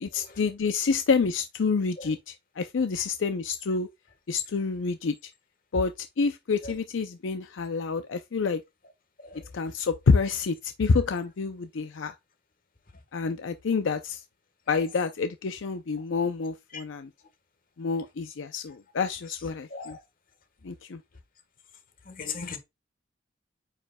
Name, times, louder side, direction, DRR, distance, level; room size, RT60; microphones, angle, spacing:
voice 1, 0.0-3.9 4.3-5.1 5.7-8.6 9.5-12.1 13.1-14.2 14.7-17.1 17.8-20.0 20.6-21.0, left 5 dB, 80° left, 0.5 m, -28 dB
voice 2, 22.1-22.6, left 5 dB, 50° left, 1.3 m, -38 dB
8.8 x 4.9 x 2.2 m
head